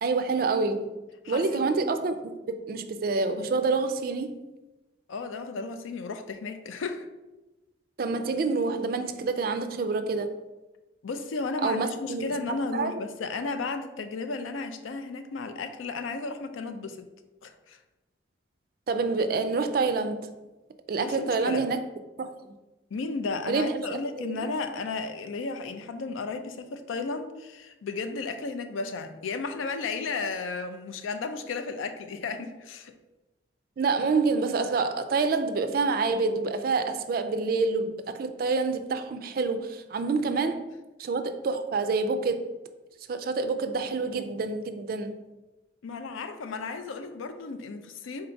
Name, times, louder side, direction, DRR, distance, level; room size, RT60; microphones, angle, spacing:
voice 1, 0.0-1.0 1.3-4.4 8.0-10.3 11.6-12.3 12.7-13.0 18.9-20.3 20.9-21.8 22.2-22.3 23.5-24.4 33.8-40.7 41.0-42.5 43.1-45.2, right 4 dB, 50° right, 9 dB, 0.3 m, -27 dB
voice 2, 1.2-1.6 5.1-7.1 11.0-17.1 17.4-17.8 21.0-21.7 22.9-32.9 45.8-48.3, left 4 dB, 90° left, 8 dB, 0.4 m, -34 dB
3.8 x 2.6 x 4.4 m, 1.1 s
head